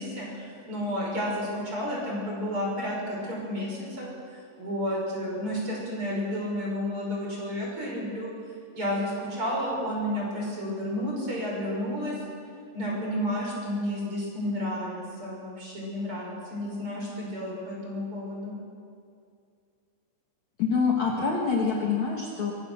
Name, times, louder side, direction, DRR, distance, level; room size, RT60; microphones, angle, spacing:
voice 1, 0.0-8.3 8.7-12.1 12.7-18.5, equal, 30° right, -3 dB, 6.6 m, -31 dB
voice 2, 20.6-22.5, left 5 dB, 50° left, -1 dB, 2.5 m, -25 dB
24.5 x 20.5 x 6.5 m, 2.3 s
omnidirectional pair, 5.1 m